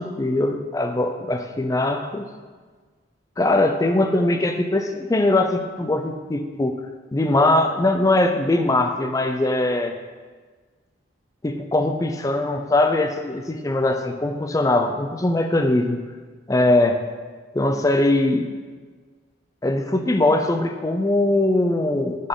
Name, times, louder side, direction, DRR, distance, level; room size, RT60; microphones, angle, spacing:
voice 1, 0.0-2.3 3.4-6.8 7.1-10.0 11.4-16.0 16.5-17.0 17.5-18.4 19.6-22.3, left 2 dB, 20° left, 6 dB, 0.4 m, -21 dB
9.7 x 4.2 x 3.7 m, 1.4 s
head